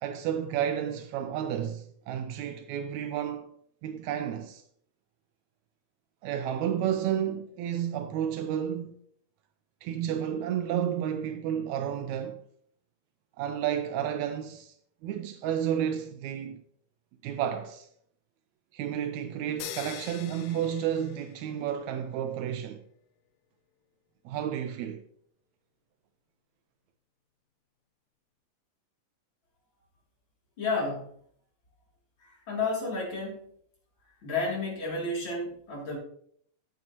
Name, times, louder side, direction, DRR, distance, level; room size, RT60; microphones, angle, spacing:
voice 1, 0.0-3.5 3.8-4.6 6.2-8.9 9.8-12.4 13.4-14.7 15.0-16.6 17.2-17.9 18.7-22.8 24.2-25.0, right 9 dB, 85° right, 1.7 m, -31 dB
sound 1, 19.6-21.7, left 12 dB, 90° left, 1.5 m, -43 dB
voice 2, 30.6-31.1 32.2-33.5 34.2-36.0, left 3 dB, 35° left, 3.6 m, -31 dB
9.4 x 9.3 x 3.0 m
omnidirectional pair, 3.8 m